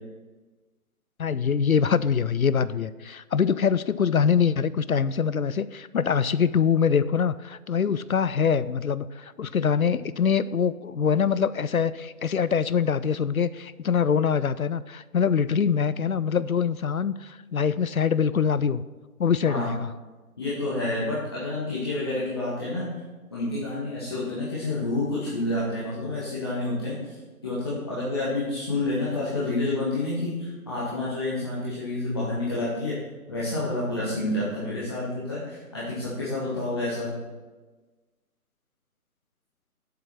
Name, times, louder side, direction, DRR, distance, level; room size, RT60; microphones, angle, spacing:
voice 1, 1.2-18.8 19.2-19.9, left 7 dB, 70° left, 16 dB, 0.5 m, -24 dB
voice 2, 20.4-22.9 23.3-27.2 27.4-33.0 33.3-37.1, left 2 dB, 15° left, -8 dB, 1.1 m, -29 dB
7.5 x 7.1 x 5.9 m, 1.3 s
figure-of-eight pair, 155°, 45 cm